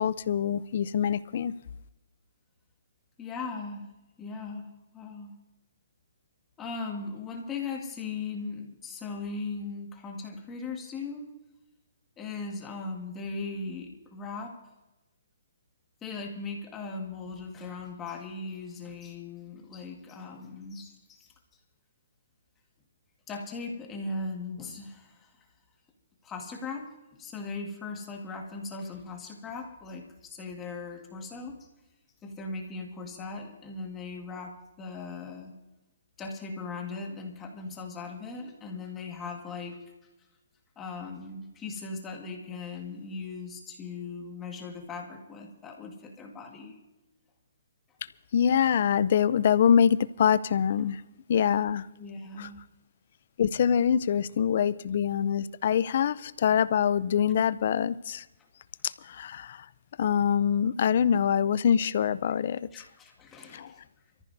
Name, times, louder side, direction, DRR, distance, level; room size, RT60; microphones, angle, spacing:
voice 1, 0.0-1.5 48.3-51.0 51.3-51.9 52.4-52.5 53.4-58.2 58.8-59.7 60.0-62.7 63.5-63.7, left 8 dB, 50° left, 17 dB, 0.5 m, -25 dB
voice 2, 3.2-3.9 4.2-5.3 6.6-11.3 12.2-14.6 16.0-21.3 23.3-25.3 26.2-31.6 32.2-35.5 36.2-39.8 40.7-46.8 52.0-52.6 62.7-63.9, left 4 dB, 15° left, 1 dB, 1.7 m, -38 dB
25.5 x 14.5 x 2.7 m, 0.99 s
hypercardioid pair, 165°, 0 cm